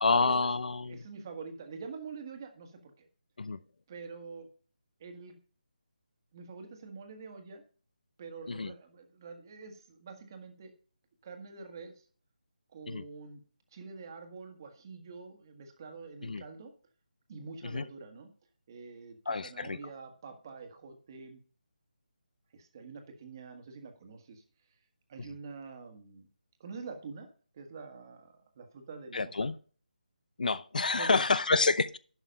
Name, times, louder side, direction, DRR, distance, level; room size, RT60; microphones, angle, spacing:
voice 1, 0.0-1.0 3.4-3.6 8.5-8.7 12.9-13.0 16.2-16.4 17.7-17.8 19.3-19.8 25.2-25.3 29.1-29.5 30.4-32.0, left 3 dB, 60° left, 0.6 m, -28 dB
voice 2, 0.9-3.1 3.9-4.5 5.0-5.4 6.3-7.6 8.2-10.7 11.2-12.1 12.7-13.4 13.7-16.7 17.3-18.3 18.7-21.4 22.5-24.4 25.1-26.3 26.6-27.3 27.5-29.5 30.9-31.2, right 4 dB, 25° right, 1.5 m, -46 dB
11.5 x 6.1 x 5.2 m
figure-of-eight pair, 170°, 5 cm